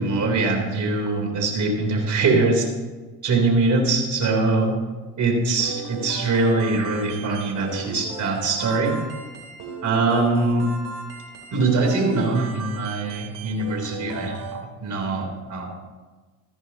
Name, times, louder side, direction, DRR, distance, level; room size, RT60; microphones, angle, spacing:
voice 1, 0.0-2.7 3.2-4.7 5.2-8.9 9.8-10.7 11.5-14.4 14.8-15.7, right 3 dB, 45° right, 1 dB, 4.0 m, -22 dB
sound 1, 5.5-14.5, right 4 dB, 65° right, 3.6 m, -37 dB
15.0 x 14.0 x 3.1 m, 1.3 s
hypercardioid pair, 75°, 42 cm